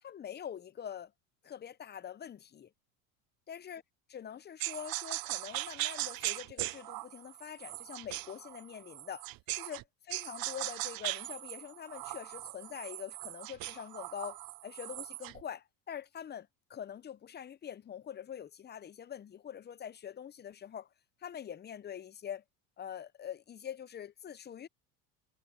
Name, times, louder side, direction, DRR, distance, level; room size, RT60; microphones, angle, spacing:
voice 1, 0.0-1.1 1.4-2.7 3.5-3.8 4.1-9.3 9.6-9.8 10.1-20.9 21.2-22.4 22.8-24.7, left 9 dB, 25° left, 0.6 m, -44 dB
sound 1, 4.6-9.8 10.1-15.4, right 18 dB, 50° right, 0.7 m, -39 dB
supercardioid pair, 105°, 45 cm